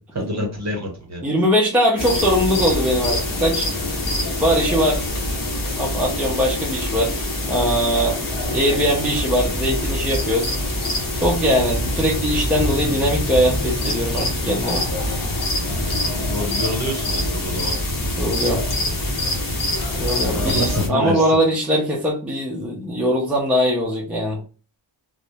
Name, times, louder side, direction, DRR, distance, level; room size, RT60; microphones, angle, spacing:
voice 1, 0.1-1.2 16.0-17.7 20.3-21.4, equal, 35° right, 1 dB, 0.8 m, -26 dB
voice 2, 1.2-3.9 4.4-5.0 5.8-7.1 7.5-8.2 8.5-10.5 11.2-14.8 18.2-18.6 19.9-24.4, equal, 5° right, -2 dB, 0.5 m, -21 dB
sound 1, 2.0-20.9, left 1 dB, 40° left, 0.8 m, -24 dB
2.8 x 2.0 x 2.3 m, 0.35 s
wide cardioid pair, 150°, 49 cm